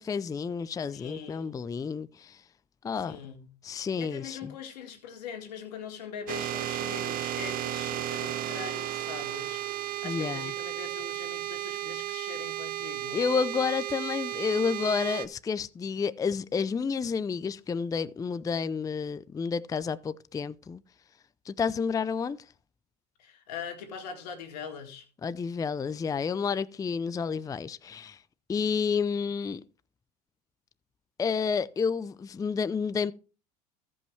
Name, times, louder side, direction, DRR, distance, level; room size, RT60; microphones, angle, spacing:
voice 1, 0.0-2.4 2.8-3.2 3.6-4.5 10.0-10.5 13.1-20.8 21.5-22.4 25.2-28.2 28.5-29.6 31.2-33.1, left 5 dB, 15° left, 0.4 m, -30 dB
voice 2, 0.9-1.6 3.0-3.6 4.0-13.2 23.2-25.1, left 6 dB, 85° left, 2.0 m, -42 dB
sound 1, 6.3-15.3, right 14 dB, 45° right, 0.7 m, -34 dB
16.0 x 5.4 x 3.2 m
hypercardioid pair, 85°, 20 cm